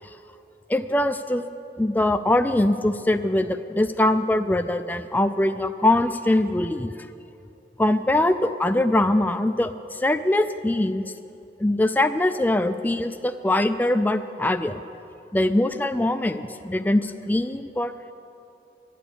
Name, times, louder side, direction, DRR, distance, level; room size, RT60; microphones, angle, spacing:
voice 1, 0.7-1.4 1.8-6.9 7.8-11.0 11.6-14.8 15.3-17.9, left 1 dB, 10° left, 8 dB, 0.3 m, -22 dB
12.0 x 10.0 x 8.5 m, 2.7 s
head